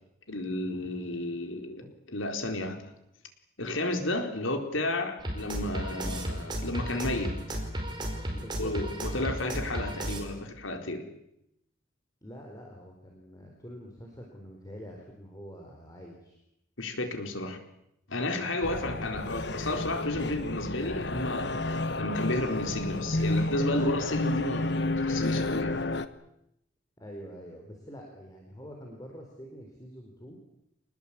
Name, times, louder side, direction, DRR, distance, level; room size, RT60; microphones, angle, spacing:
voice 1, 0.3-2.9 3.6-7.6 8.6-11.1 16.8-17.6 18.1-25.8, left 2 dB, 80° left, 5 dB, 4.2 m, -32 dB
sound 1, 5.2-10.2, right 1 dB, 20° right, 5.0 m, -34 dB
voice 2, 8.3-9.3 12.2-16.4 27.0-30.4, equal, 20° left, 1 dB, 4.3 m, -46 dB
sound 2, 18.6-26.1, left 2 dB, 55° left, 1.3 m, -31 dB
26.5 x 20.0 x 8.7 m, 0.82 s
head